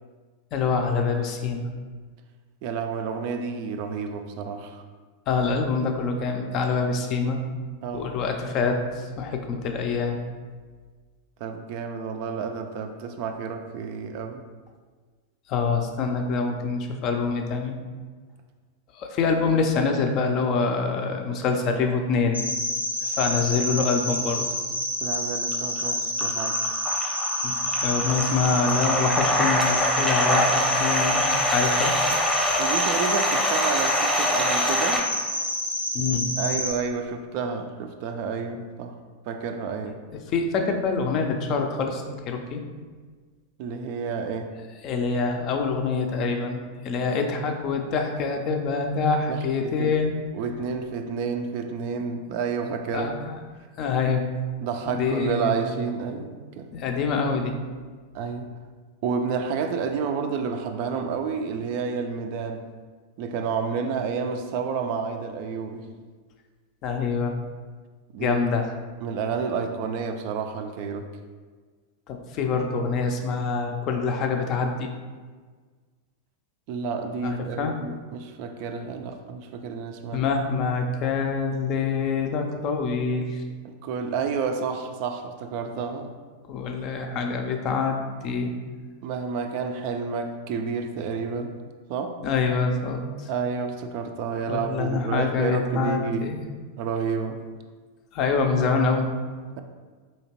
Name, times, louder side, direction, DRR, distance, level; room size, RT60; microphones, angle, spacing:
voice 1, 0.5-1.7 5.3-7.4 7.9-10.2 15.5-17.8 18.9-22.4 23.0-24.4 27.4-27.5 27.8-31.9 35.9-36.2 40.3-42.6 44.8-50.2 52.9-53.4 53.8-54.2 54.9-55.5 56.7-57.5 66.8-67.3 68.2-68.7 72.1-74.9 77.2-77.7 80.1-83.4 86.5-88.5 92.2-93.3 94.5-96.4 98.1-99.1, left 4 dB, 35° left, 4 dB, 0.4 m, -25 dB
voice 2, 2.6-4.8 7.8-8.2 11.4-14.4 25.0-26.6 32.6-35.0 36.4-39.0 39.3-40.0 43.6-44.5 49.3-49.9 50.3-53.2 54.6-56.7 58.1-58.5 59.0-62.7 63.2-65.9 68.1-68.4 69.0-71.1 76.7-80.2 83.6-86.1 89.0-91.5 91.9-92.2 93.3-96.4 96.8-97.4, right 5 dB, 45° right, 6 dB, 0.3 m, -30 dB
Cricket, 22.3-36.7, left 1 dB, 90° right, 0.6 m, -28 dB
sound 1, 25.5-25.8 26.2-35.0, equal, ahead, 0.8 m, -25 dB
4.1 x 2.8 x 2.9 m, 1.5 s
figure-of-eight pair, 90°, 0 cm